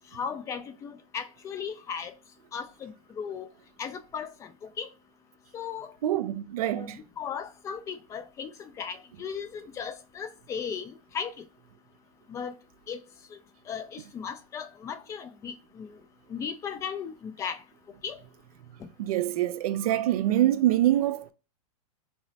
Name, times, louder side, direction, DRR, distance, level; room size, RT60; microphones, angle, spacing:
voice 1, 0.1-2.1 2.5-3.5 3.8-4.5 4.8-4.9 5.5-5.9 6.7-11.3 12.3-12.5 12.9-13.0 13.3-13.4 13.7-15.9 16.3-17.6 18.0-18.2, left 7 dB, 15° left, 0.3 m, -36 dB
voice 2, 6.0-7.0 19.0-21.3, right 13 dB, 70° right, 0.4 m, -25 dB
3.9 x 2.0 x 2.7 m
hypercardioid pair, 140°, 19 cm